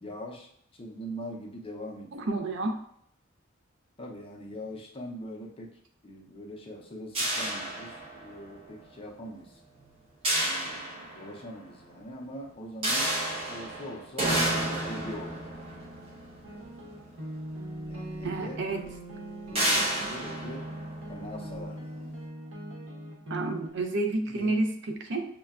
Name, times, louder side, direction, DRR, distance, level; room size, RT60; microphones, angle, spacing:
voice 1, 0.0-2.3 4.0-5.8 6.0-9.6 10.3-13.1 13.5-15.4 17.8-18.8 19.5-20.7 21.1-22.1 24.3-24.6, equal, 25° left, 0 dB, 0.6 m, -42 dB
voice 2, 2.1-2.8 18.2-18.8 23.3-25.3, right 2 dB, 60° right, 5 dB, 0.5 m, -30 dB
sound 1, 7.1-8.5 10.2-11.5 12.8-17.3 18.2-18.3 18.7-18.9 19.5-21.5, right 1 dB, 30° right, 0.9 m, -31 dB
sound 2, 16.4-23.7, right 1 dB, 80° right, 1.0 m, -40 dB
6.3 x 2.2 x 2.3 m, 0.67 s
head